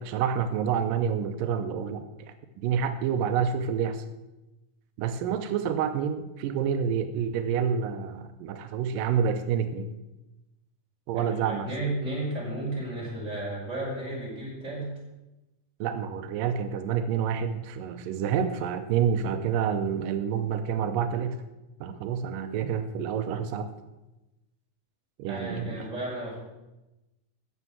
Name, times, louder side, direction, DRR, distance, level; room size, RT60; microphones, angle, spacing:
voice 1, 0.0-2.0 2.6-4.0 5.0-9.9 11.1-11.7 15.8-21.4 21.8-23.7 25.2-25.9, right 7 dB, 90° right, 8 dB, 2.5 m, -28 dB
voice 2, 11.1-15.0 25.3-26.4, right 2 dB, 20° right, -5 dB, 6.0 m, -33 dB
14.0 x 8.9 x 7.3 m, 1.0 s
omnidirectional pair, 3.8 m